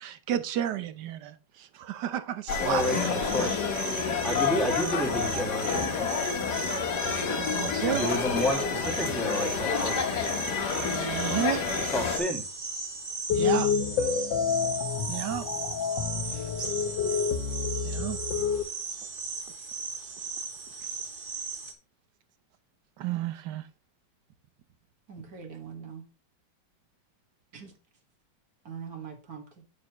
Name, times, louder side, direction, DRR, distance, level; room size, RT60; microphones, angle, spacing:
voice 1, 0.0-3.4 5.1-5.5 7.2-8.1 10.7-11.7 13.3-13.7 15.1-15.5 16.3-16.5 17.8-18.2 23.0-23.7, right 11 dB, 75° right, 12 dB, 1.4 m, -32 dB
sound 1, 2.5-12.2, left 6 dB, 65° left, 1.8 m, -29 dB
sound 2, 2.5-21.7, right 4 dB, 35° right, 1.2 m, -37 dB
voice 2, 2.6-3.7 4.2-6.3 7.8-10.2 11.9-12.4, equal, ahead, -1 dB, 1.9 m, -31 dB
sound 3, 13.3-18.6, left 6 dB, 90° left, 1.5 m, -28 dB
voice 3, 25.1-26.0 27.5-27.8 28.6-29.6, right 6 dB, 55° right, 3 dB, 2.1 m, -42 dB
8.6 x 6.8 x 3.0 m, 0.31 s
omnidirectional pair, 1.9 m